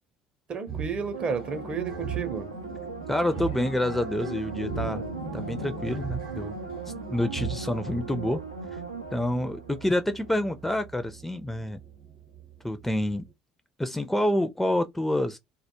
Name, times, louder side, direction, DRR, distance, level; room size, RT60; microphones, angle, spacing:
voice 1, 0.5-2.5, right 5 dB, 35° right, 0.6 m, -32 dB
sound 1, 0.7-13.3, right 7 dB, 70° right, 0.8 m, -40 dB
sound 2, 1.1-10.5 10.9-11.0, right 4 dB, 85° right, 0.3 m, -39 dB
voice 2, 3.1-5.0 5.3-6.5 7.1-8.4 8.7-8.8 9.1-11.8 12.6-13.2 13.8-15.4, left 1 dB, 5° left, 0.4 m, -27 dB
sound 3, 3.3-7.8 10.2-10.4, left 2 dB, 80° left, 0.5 m, -41 dB
2.2 x 2.1 x 2.8 m
figure-of-eight pair, 55°, 3 cm